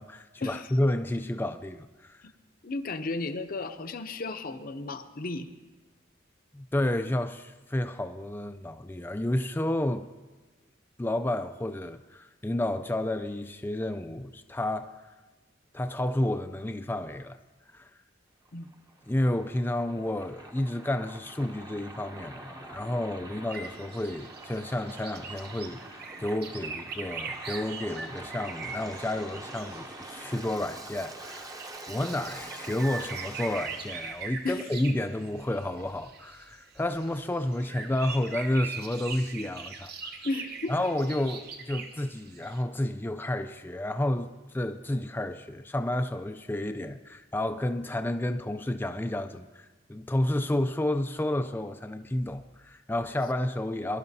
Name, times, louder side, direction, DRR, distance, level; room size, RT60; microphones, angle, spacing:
voice 1, 0.0-2.2 6.5-10.1 11.0-14.9 15.7-17.4 17.7-17.9 19.1-31.5 31.9-40.2 40.7-54.0, left 1 dB, 10° left, 0.3 m, -31 dB
voice 2, 2.6-5.5 18.5-18.7 34.4-34.7 40.2-40.7, left 3 dB, 50° left, 0.7 m, -34 dB
Waves surf, 18.5-34.2, right 2 dB, 20° right, 0.8 m, -45 dB
sound 1, 23.5-42.6, right 5 dB, 55° right, 0.8 m, -42 dB
22.5 x 11.5 x 2.7 m
head